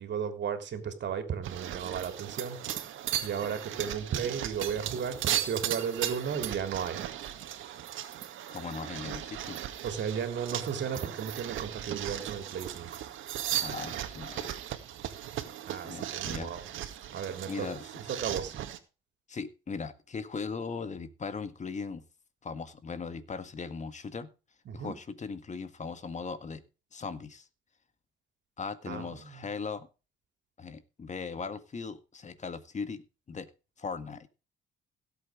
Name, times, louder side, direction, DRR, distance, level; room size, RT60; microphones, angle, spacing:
voice 1, 0.0-2.6 3.2-7.0 9.8-13.0 15.7-16.6 17.1-17.7 18.1-18.6 24.6-25.0 28.9-29.5, right 7 dB, 65° right, 8 dB, 3.4 m, -34 dB
sound 1, 1.4-18.8, right 11 dB, 80° right, 2.0 m, -37 dB
voice 2, 8.5-9.6 13.6-14.6 15.8-16.6 17.5-17.9 19.3-22.0 22.4-24.3 24.7-26.6 26.9-27.5 28.6-29.9 30.6-33.5 33.8-34.3, left 5 dB, 35° left, 12 dB, 1.8 m, -38 dB
17.0 x 8.0 x 5.0 m, 0.32 s
cardioid pair, 90°, 20 cm